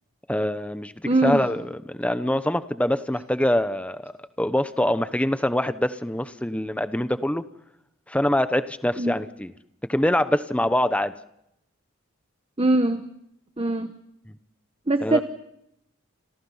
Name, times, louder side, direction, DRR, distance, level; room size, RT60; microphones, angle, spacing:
voice 1, 0.3-0.9 1.2-1.6 1.9-4.1 4.4-7.4 8.1-9.5 9.9-11.1 15.0-15.2, left 1 dB, 5° left, 11 dB, 0.9 m, -24 dB
voice 2, 1.1-1.4 9.0-9.1 12.6-13.1 13.6-13.9 14.9-15.2, right 2 dB, 25° right, 8 dB, 1.1 m, -22 dB
29.5 x 28.5 x 5.7 m, 0.82 s
head